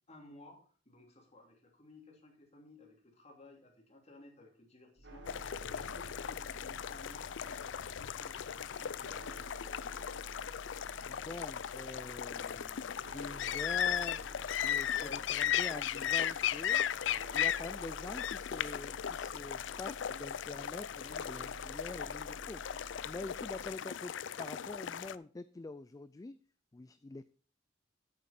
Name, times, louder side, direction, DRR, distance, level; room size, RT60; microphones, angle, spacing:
voice 1, 0.1-5.3 5.7-9.3 14.9-15.6, left 2 dB, 35° left, 1 dB, 2.9 m, -57 dB
sound 1, 5.0-23.7, equal, 65° right, 1.9 m, -52 dB
sound 2, 5.3-25.2, left 9 dB, 80° left, 0.4 m, -37 dB
voice 2, 11.1-16.8 17.3-24.1 24.4-26.4 26.7-27.3, left 2 dB, 20° left, 13 dB, 0.3 m, -45 dB
8.8 x 8.4 x 4.3 m, 0.42 s
head